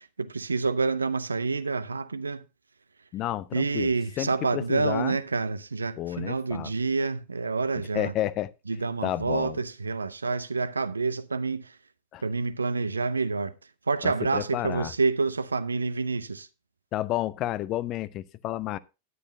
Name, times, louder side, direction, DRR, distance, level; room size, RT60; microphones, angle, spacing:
voice 1, 0.0-2.4 3.5-8.1 8.7-11.8 12.2-13.5 13.9-16.5, right 4 dB, 75° right, 0.6 m, -28 dB
voice 2, 3.1-3.9 4.2-5.2 6.0-6.7 7.9-8.5 9.0-9.6 12.1-12.2 14.0-14.9 16.9-18.8, left 13 dB, 35° left, 0.6 m, -31 dB
12.5 x 10.0 x 2.7 m
figure-of-eight pair, 90°, 0 cm